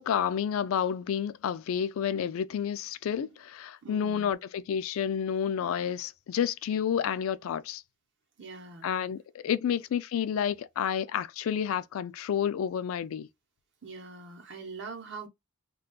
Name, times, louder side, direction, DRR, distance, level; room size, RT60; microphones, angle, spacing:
voice 1, 0.0-7.8 8.8-13.3, left 8 dB, 75° left, 0.3 m, -30 dB
voice 2, 3.8-4.3 8.4-8.9 13.8-15.3, right 4 dB, 55° right, 0.7 m, -43 dB
2.3 x 2.3 x 3.6 m
head